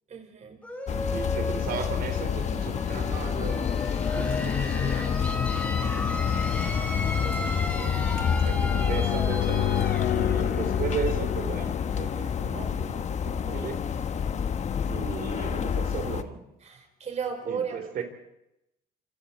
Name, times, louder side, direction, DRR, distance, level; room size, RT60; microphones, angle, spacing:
voice 1, 0.1-0.6 16.6-17.9, right 6 dB, 40° right, 5 dB, 5.1 m, -34 dB
sound 1, 0.6-12.2, left 1 dB, 10° left, 5.8 m, -36 dB
sound 2, 0.9-16.2, left 7 dB, 40° left, 1.3 m, -28 dB
voice 2, 1.1-5.2 5.7-6.7 7.2-8.0 8.4-13.8 14.9-16.4 17.4-18.0, right 6 dB, 60° right, 6 dB, 3.5 m, -36 dB
sound 3, 2.9-13.6, left 13 dB, 65° left, 1.1 m, -33 dB
27.5 x 27.0 x 4.3 m, 0.85 s
cardioid pair, 110°, 17 cm